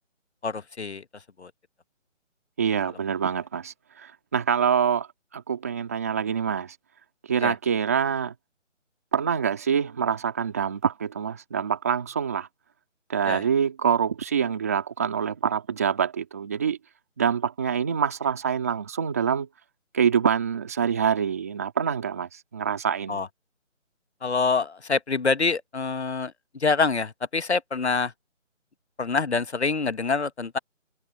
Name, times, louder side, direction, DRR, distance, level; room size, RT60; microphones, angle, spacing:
voice 1, 0.4-1.0 1.4-1.5 7.4-7.5 13.3-13.4 23.1-23.3 24.2-26.3 26.6-28.1 29.0-30.6, left 4 dB, 60° left, 1.2 m, -26 dB
voice 2, 2.6-5.1 5.3-6.8 7.3-8.3 9.1-12.5 13.1-16.8 17.2-19.5 19.9-23.2, right 7 dB, 10° right, 1.8 m, -25 dB
figure-of-eight pair, 175°, 38 cm